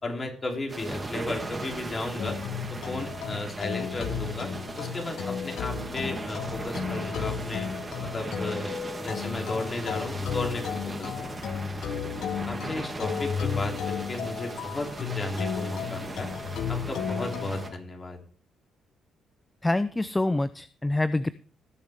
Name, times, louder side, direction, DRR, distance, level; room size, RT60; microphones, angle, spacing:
voice 1, 0.0-2.4 2.7-4.5 4.8-7.7 8.0-11.6 12.5-16.3 16.7-18.2, left 2 dB, 35° left, 2 dB, 3.1 m, -34 dB
sound 1, 0.7-17.7, right 3 dB, 25° right, 2.2 m, -38 dB
sound 2, 2.2-17.8, left 7 dB, 75° left, 0.9 m, -34 dB
voice 2, 19.6-21.3, left 2 dB, 15° left, 14 dB, 0.4 m, -26 dB
18.0 x 7.0 x 3.5 m, 0.44 s
cardioid pair, 90°, 0 cm